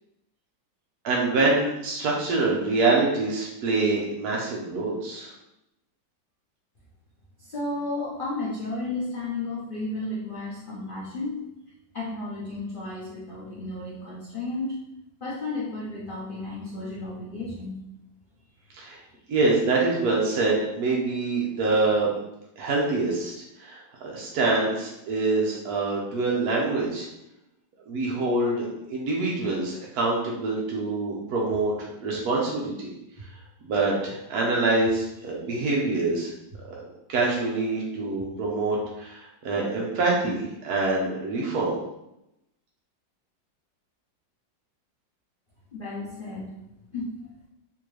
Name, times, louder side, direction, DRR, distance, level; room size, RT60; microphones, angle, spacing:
voice 1, 1.0-5.3 18.8-19.0 19.3-22.1 22.6-27.1 27.9-31.7 32.0-32.9 33.2-33.3 33.6-36.3 36.6-36.8 37.1-41.8, right 3 dB, 65° right, -3 dB, 1.1 m, -25 dB
voice 2, 7.4-11.4 11.9-14.7 15.2-17.8 45.7-46.5 46.9-47.1, left 2 dB, 80° left, -7 dB, 0.4 m, -33 dB
sound 1, 31.5-31.6 32.1-32.2 33.2-33.3 33.8-33.9 34.8-34.9 35.5-35.6 36.5-36.6 37.1-37.2 38.1-38.2 38.8-38.9, right 4 dB, 45° right, 1.6 m, -45 dB
3.7 x 2.7 x 3.1 m, 0.86 s
omnidirectional pair, 2.0 m